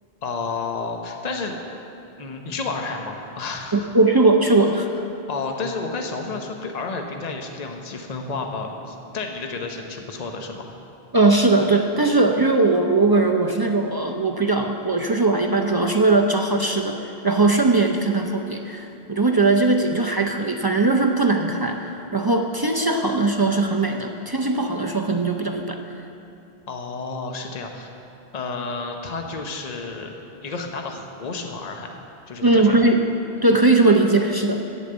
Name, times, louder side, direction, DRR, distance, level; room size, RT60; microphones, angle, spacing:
voice 1, 0.2-1.6 2.2-3.9 5.3-10.7 26.7-27.9 28.3-30.2 30.4-32.0 32.3-32.8, left 4 dB, 40° left, 3 dB, 0.9 m, -31 dB
voice 2, 3.7-4.9 11.1-25.8 32.4-33.0 33.4-34.6, right 3 dB, 35° right, 2 dB, 0.3 m, -19 dB
8.5 x 7.3 x 7.9 m, 2.8 s
omnidirectional pair, 1.1 m